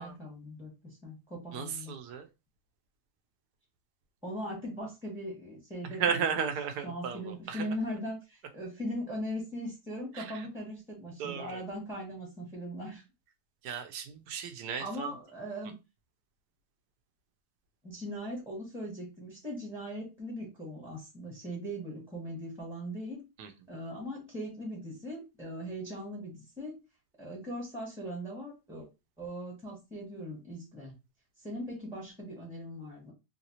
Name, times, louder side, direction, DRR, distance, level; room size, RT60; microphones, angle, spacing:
voice 1, 0.0-1.9 4.2-6.5 6.8-13.0 14.8-15.8 17.8-23.2 23.7-26.8 27.2-28.9 29.2-30.9 31.4-33.1, equal, ahead, -3 dB, 0.7 m, -39 dB
voice 2, 1.5-2.3 5.8-7.7 10.1-10.5 11.2-11.6 13.6-15.1 23.4-23.5, right 7 dB, 75° right, 7 dB, 1.2 m, -35 dB
3.2 x 2.7 x 2.8 m, 0.26 s
omnidirectional pair, 1.9 m